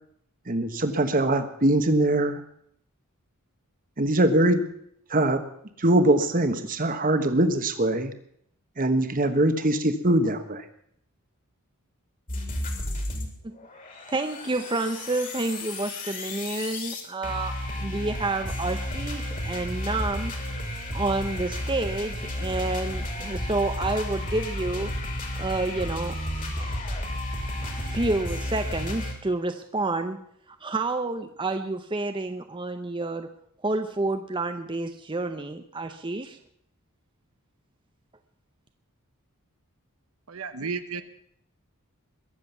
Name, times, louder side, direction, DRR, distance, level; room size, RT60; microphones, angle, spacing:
voice 1, 0.5-2.4 4.0-4.6 5.1-5.4 5.8-8.1 8.8-10.6, right 1 dB, 40° right, 9 dB, 1.3 m, -22 dB
sound 1, 12.3-13.3 13.6-29.1, left 1 dB, 35° left, 2.9 m, -32 dB
voice 2, 14.1-20.3 20.9-24.9 25.4-26.2 26.6-26.8 27.6-30.2 30.6-33.3 33.6-36.4, right 2 dB, 20° right, 7 dB, 0.7 m, -29 dB
voice 3, 40.3-41.0, right 5 dB, 70° right, 10 dB, 0.9 m, -32 dB
21.5 x 7.5 x 7.2 m, 0.68 s
head